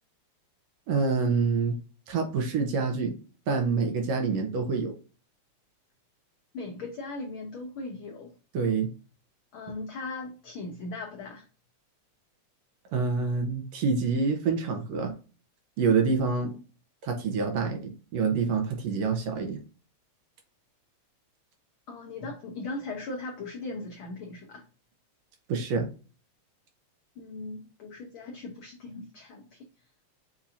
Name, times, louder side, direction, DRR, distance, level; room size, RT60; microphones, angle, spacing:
voice 1, 0.9-1.8 2.1-3.2 3.5-4.9 8.5-8.9 12.9-15.2 15.8-16.6 17.0-19.6 25.5-25.9, right 4 dB, 70° right, 1.8 m, -27 dB
voice 2, 6.5-8.3 9.5-11.4 21.9-24.7 27.2-29.6, left 3 dB, 80° left, 1.1 m, -38 dB
7.1 x 2.8 x 2.4 m
omnidirectional pair, 3.4 m